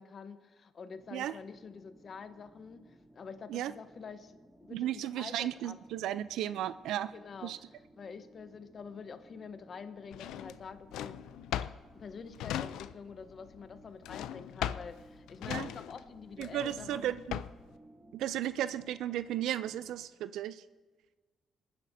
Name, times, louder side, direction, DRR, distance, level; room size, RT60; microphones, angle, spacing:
voice 1, 0.0-4.9 5.2-5.7 7.1-7.5 8.0-11.1 11.9-17.2, left 5 dB, 50° left, 10 dB, 0.8 m, -47 dB
sound 1, 0.9-20.0, right 1 dB, 15° right, 2.9 m, -59 dB
voice 2, 4.7-7.1 7.4-7.6 15.5-15.7 16.4-17.4 18.1-20.6, right 12 dB, 85° right, 14 dB, 0.3 m, -35 dB
Drawer open or close, 10.1-13.2 13.5-17.7, left 11 dB, 90° left, 0.3 m, -39 dB
27.5 x 9.6 x 2.7 m, 1.4 s
cardioid pair, 90°, 0 cm